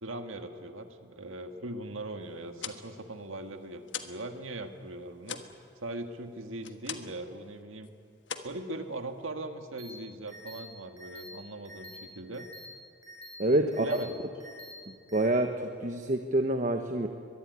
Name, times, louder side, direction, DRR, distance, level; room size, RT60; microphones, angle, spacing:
voice 1, 0.0-5.4 5.8-7.9 8.4-12.5 13.6-14.2, right 2 dB, 80° right, 6 dB, 1.8 m, -40 dB
sound 1, 2.4-4.3 4.6-7.3 7.6-7.9 8.2-9.3, left 8 dB, 60° left, 1.5 m, -42 dB
sound 2, 9.8-9.9 10.3-10.6 11.0-11.3 11.6-12.0 12.3-12.7 13.0-13.3 13.7-14.0 14.4-14.7 15.1-15.2, equal, 20° right, 6.2 m, -47 dB
voice 2, 13.4-14.0 14.9-17.1, right 1 dB, 40° right, 6 dB, 1.1 m, -27 dB
23.0 x 22.5 x 9.5 m, 2.4 s
head